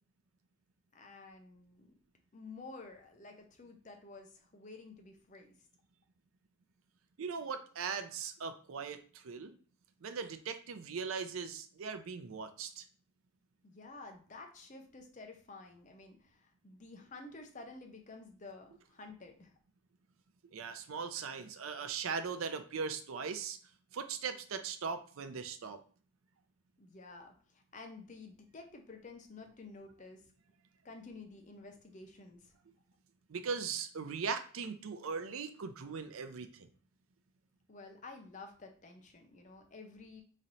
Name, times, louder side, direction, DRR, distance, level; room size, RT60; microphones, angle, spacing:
voice 1, 0.9-1.9 2.3-5.5 13.6-19.5 26.8-27.3 27.7-30.2 30.8-32.4 37.7-40.2, left 3 dB, 35° left, 3 dB, 0.6 m, -51 dB
voice 2, 7.2-9.6 10.0-12.9 20.5-23.6 23.9-25.8 33.3-36.7, right 5 dB, 85° right, 9 dB, 0.5 m, -39 dB
3.1 x 2.7 x 4.0 m, 0.42 s
head